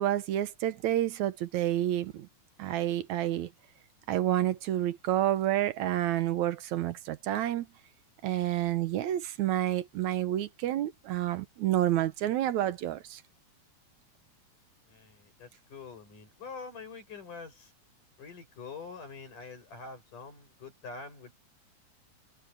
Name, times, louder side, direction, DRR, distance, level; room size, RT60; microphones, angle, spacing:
voice 1, 0.0-2.3 2.6-3.5 4.1-7.7 8.2-13.2, right 12 dB, 75° right, 2.2 m, -29 dB
voice 2, 14.9-17.7 18.2-21.3, left 4 dB, 85° left, 9.7 m, -45 dB
omnidirectional pair, 3.6 m